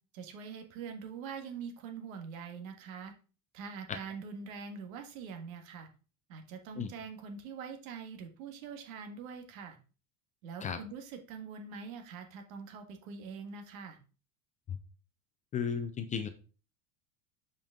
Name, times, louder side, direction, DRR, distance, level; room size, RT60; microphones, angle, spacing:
voice 1, 0.1-3.1 3.5-5.9 6.3-9.8 10.4-14.0, right 5 dB, 80° right, 6 dB, 1.7 m, -44 dB
voice 2, 15.5-16.3, left 7 dB, 20° left, 9 dB, 0.4 m, -34 dB
7.7 x 5.3 x 3.7 m, 0.36 s
supercardioid pair, 150°, 40 cm